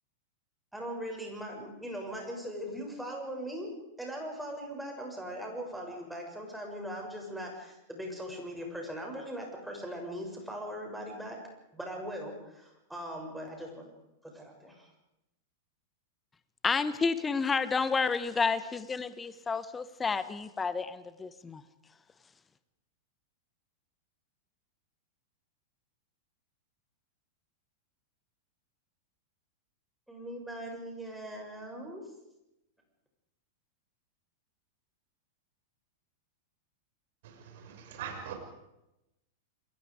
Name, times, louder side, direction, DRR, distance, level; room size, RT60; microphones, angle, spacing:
voice 1, 0.7-3.7 4.0-11.4 11.7-13.9 14.2-14.9 30.1-32.0, equal, 5° right, 7.2 m, -40 dB
voice 2, 16.6-21.6, left 5 dB, 15° left, 1.2 m, -30 dB
voice 3, 37.2-38.3, right 8 dB, 55° right, 6.2 m, -42 dB
28.5 x 22.5 x 5.1 m
figure-of-eight pair, 95°, 0 cm